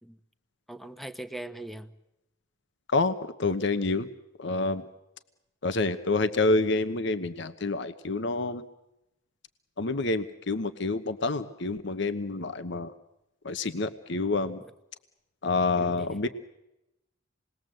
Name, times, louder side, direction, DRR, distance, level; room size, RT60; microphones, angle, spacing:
voice 1, 0.7-1.9 14.6-14.7 15.8-16.2, right 1 dB, ahead, 11 dB, 1.1 m, -41 dB
voice 2, 2.9-4.1 4.4-4.8 5.6-8.6 9.8-12.9 13.4-14.6 15.4-16.3, left 3 dB, 65° left, 11 dB, 1.1 m, -28 dB
28.0 x 20.5 x 7.8 m, 0.91 s
head